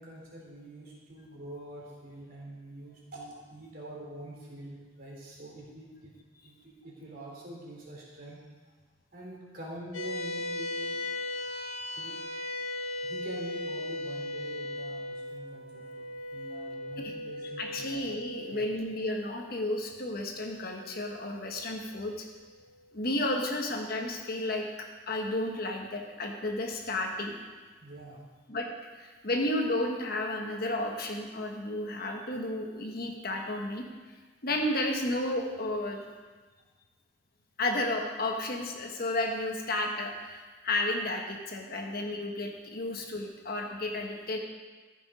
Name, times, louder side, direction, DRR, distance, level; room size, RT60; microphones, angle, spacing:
voice 1, 0.0-6.1 6.4-8.4 9.1-11.0 11.9-12.2 13.0-18.1 18.5-18.7 27.8-28.2, right 1 dB, 45° right, -4 dB, 3.2 m, -45 dB
sound 1, 9.9-22.6, left 1 dB, 90° left, 1.3 m, -38 dB
voice 2, 17.6-22.3 22.9-24.7 25.1-27.3 28.5-28.7 28.9-33.8 34.4-36.0 37.6-44.4, left 1 dB, 50° left, 2 dB, 1.2 m, -32 dB
14.5 x 6.1 x 4.9 m, 1.3 s
head